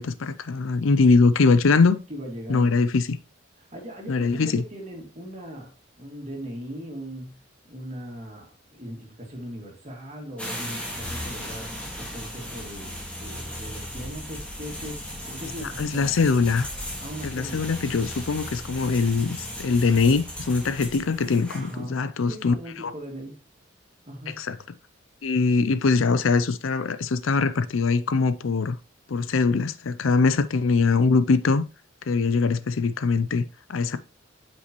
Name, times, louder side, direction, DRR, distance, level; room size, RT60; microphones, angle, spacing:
voice 1, 0.0-2.0 2.5-3.2 4.1-4.6 15.6-16.7 17.2-22.5 22.8-22.9 24.3-24.6 25.2-28.8 29.1-31.6 32.1-33.4 33.7-34.0, left 4 dB, 85° left, 0.5 m, -22 dB
voice 2, 2.1-2.8 3.6-5.7 6.0-7.4 7.7-11.7 12.0-16.1 17.0-17.7 21.5-23.4 24.1-24.4, equal, 35° right, 2.4 m, -39 dB
sound 1, 10.4-21.8, equal, 5° left, 1.8 m, -36 dB
8.3 x 5.3 x 3.0 m
head